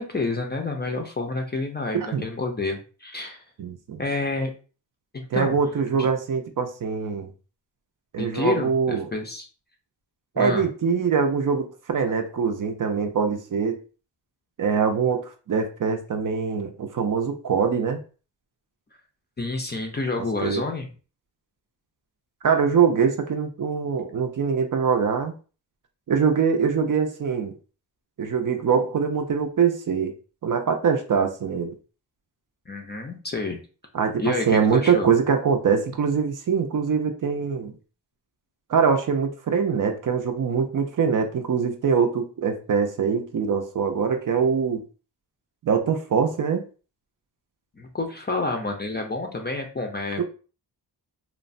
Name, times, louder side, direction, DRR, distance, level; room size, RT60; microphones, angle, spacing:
voice 1, 0.0-3.4 4.0-4.5 5.1-5.6 5.9-6.1 8.2-9.5 10.4-10.7 19.4-20.9 32.7-33.6 34.2-35.1 47.8-50.2, left 3 dB, 25° left, 3 dB, 0.4 m, -29 dB
voice 2, 3.6-4.0 5.3-7.3 8.1-9.1 10.4-13.8 14.6-18.0 20.4-20.6 22.4-25.3 26.1-27.5 28.2-30.1 30.4-31.7 33.9-37.7 38.7-44.8 45.6-46.6 50.2-50.3, right 6 dB, 50° right, 5 dB, 0.5 m, -23 dB
3.1 x 2.1 x 2.5 m, 0.36 s
wide cardioid pair, 100°, 42 cm